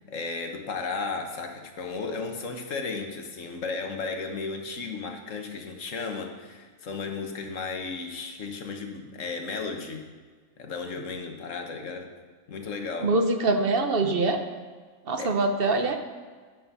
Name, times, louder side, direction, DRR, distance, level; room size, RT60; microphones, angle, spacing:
voice 1, 0.0-10.1 10.6-12.1 12.5-13.1 15.2-15.4, left 4 dB, 65° left, 4 dB, 1.5 m, -34 dB
voice 2, 13.0-14.4 15.1-16.1, right 3 dB, 45° right, 6 dB, 1.0 m, -24 dB
10.0 x 7.5 x 5.6 m, 1.5 s
omnidirectional pair, 1.5 m